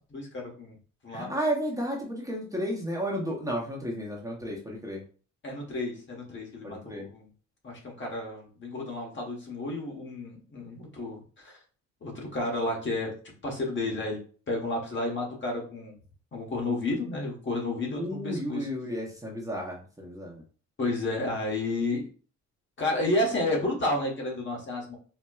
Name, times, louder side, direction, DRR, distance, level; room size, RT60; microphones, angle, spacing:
voice 1, 0.1-0.7 1.0-1.3 5.4-7.3 7.6-11.6 12.0-13.1 13.4-14.2 14.5-16.0 16.3-18.7 20.8-22.1 22.8-24.9, left 2 dB, 40° left, -1 dB, 1.1 m, -31 dB
voice 2, 1.1-5.0 6.6-7.1 17.9-20.4, equal, 10° right, -3 dB, 0.8 m, -32 dB
4.3 x 2.1 x 2.3 m, 0.40 s
cardioid pair, 90°, 30 cm